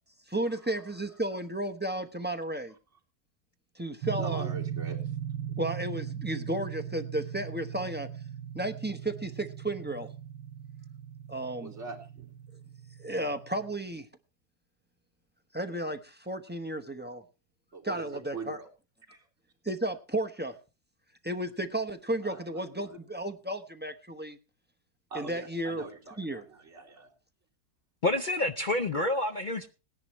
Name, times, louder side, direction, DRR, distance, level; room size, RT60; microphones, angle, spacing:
voice 1, 0.3-2.7 3.8-4.5 5.6-8.1 8.5-10.1 11.3-11.7 13.0-14.1 15.5-17.2 17.8-18.6 19.6-20.6 21.2-24.4 25.1-25.8 26.2-26.4, right 1 dB, 10° right, 0.6 m, -33 dB
sound 1, 4.0-13.8, right 10 dB, 70° right, 1.3 m, -39 dB
voice 2, 4.2-5.0 11.6-12.3 17.7-18.1 18.3-18.7 19.1-19.2 22.2-23.0 25.1-27.1, right 4 dB, 40° right, 4.0 m, -42 dB
voice 3, 28.0-29.7, left 2 dB, 65° left, 0.4 m, -28 dB
18.5 x 10.5 x 3.1 m
omnidirectional pair, 1.8 m